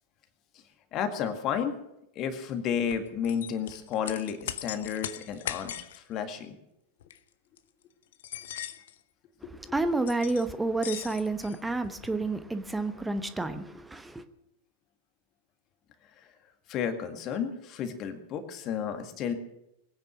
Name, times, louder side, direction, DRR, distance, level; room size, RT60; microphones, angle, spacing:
voice 1, 0.9-1.8 2.1-6.6 9.7-9.9 16.2-16.3 16.7-19.3, left 8 dB, 35° left, 1.9 m, -32 dB
sound 1, 2.9-6.0 7.0-7.2 7.6-7.7 8.1-9.0 10.1-10.5 10.8-12.3, left 10 dB, 60° left, 0.9 m, -39 dB
voice 2, 9.7-14.2, right 2 dB, 5° right, 1.0 m, -30 dB
21.0 x 9.5 x 6.2 m
figure-of-eight pair, 90°, 0 cm